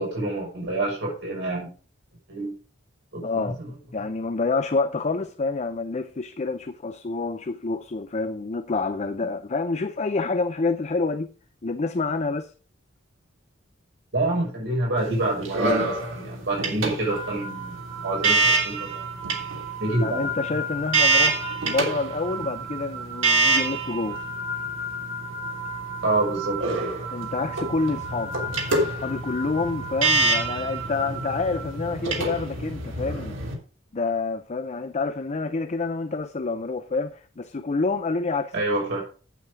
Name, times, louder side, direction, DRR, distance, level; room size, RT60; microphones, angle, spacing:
voice 1, 0.0-1.7 2.3-2.6 3.1-3.5 14.1-19.1 19.8-20.3 26.0-27.0 38.5-39.0, right 2 dB, 65° right, 6.0 m, -27 dB
voice 2, 3.2-3.6 3.9-11.3 11.6-12.5 20.0-24.2 27.1-28.4 28.7-33.3 33.9-38.5, left 3 dB, 35° left, 0.6 m, -28 dB
sound 1, 15.0-33.5, right 3 dB, 80° right, 3.2 m, -27 dB
sound 2, 17.1-32.2, right 2 dB, 25° right, 4.7 m, -35 dB
8.4 x 8.4 x 5.0 m
head